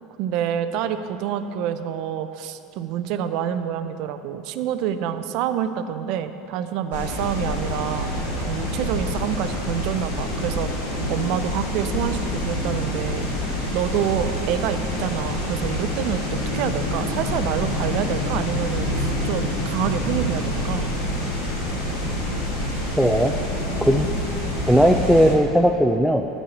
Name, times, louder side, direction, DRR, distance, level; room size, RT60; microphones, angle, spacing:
voice 1, 0.2-8.1 8.4-10.8 11.1-13.3 13.7-20.9, right 9 dB, 60° right, 10 dB, 0.6 m, -27 dB
sound 1, 6.9-25.3, left 1 dB, 90° left, 2.4 m, -27 dB
voice 2, 23.0-23.3 23.8-24.1 24.7-26.3, equal, ahead, 3 dB, 0.5 m, -17 dB
10.5 x 5.5 x 8.3 m, 2.7 s
hypercardioid pair, 80°, 0 cm